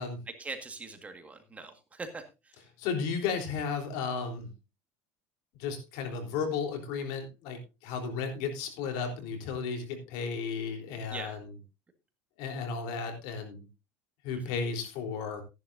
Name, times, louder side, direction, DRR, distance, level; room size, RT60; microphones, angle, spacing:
voice 1, 0.4-2.6 11.1-11.4 14.3-14.5, right 3 dB, 20° right, 7 dB, 1.8 m, -42 dB
voice 2, 2.8-4.5 5.6-11.5 12.4-13.7 14.2-15.4, left 5 dB, 75° left, 3 dB, 3.7 m, -34 dB
14.5 x 10.5 x 2.7 m, 0.26 s
supercardioid pair, 130°, 8 cm